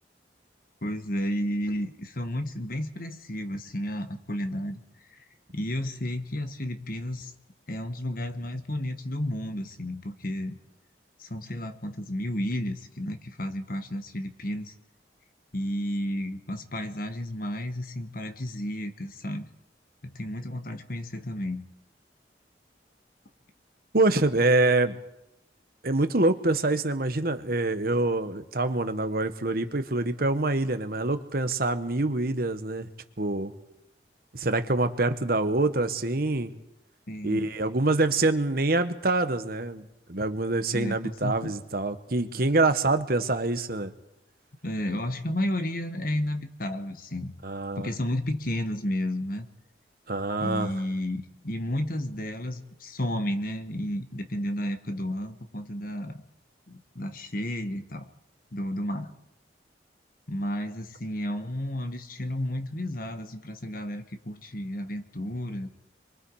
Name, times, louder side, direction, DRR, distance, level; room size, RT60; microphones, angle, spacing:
voice 1, 0.8-4.8 5.5-7.3 7.7-10.6 11.2-14.7 15.5-19.5 20.0-21.7 37.1-37.5 40.7-41.5 42.4-42.5 44.6-47.3 47.8-49.5 50.4-56.2 56.7-58.1 58.5-59.1 60.3-65.7, left 1 dB, 50° left, 8 dB, 1.6 m, -32 dB
voice 2, 23.9-25.0 25.8-32.9 33.2-33.5 34.3-36.5 37.2-39.8 40.1-43.9 47.4-47.9 50.1-50.7, right 2 dB, 55° right, 9 dB, 1.3 m, -25 dB
27.0 x 23.5 x 4.9 m, 0.86 s
head